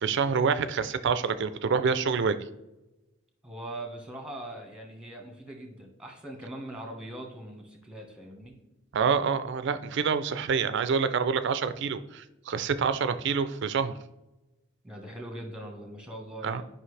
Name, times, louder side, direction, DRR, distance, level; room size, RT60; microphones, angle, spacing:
voice 1, 0.0-2.4 8.9-13.9 16.4-16.6, right 6 dB, 60° right, 12 dB, 0.4 m, -27 dB
voice 2, 3.4-8.5 14.8-16.6, right 1 dB, 5° right, 3 dB, 1.3 m, -41 dB
10.0 x 5.5 x 3.3 m, 0.99 s
head